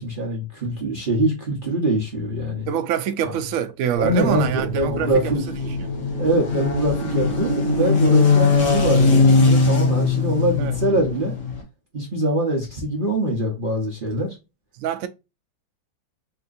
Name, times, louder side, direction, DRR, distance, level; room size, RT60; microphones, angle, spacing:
voice 1, 0.0-2.7 3.2-3.3 3.9-5.4 6.2-11.4 11.9-14.3, right 1 dB, 40° right, 0.9 m, -23 dB
voice 2, 2.7-5.4 5.7-5.9 10.6-10.8 14.8-15.1, right 9 dB, 70° right, 0.8 m, -25 dB
sound 1, 4.0-11.6, left 4 dB, 75° left, 1.9 m, -20 dB
4.3 x 2.8 x 2.4 m
omnidirectional pair, 1.9 m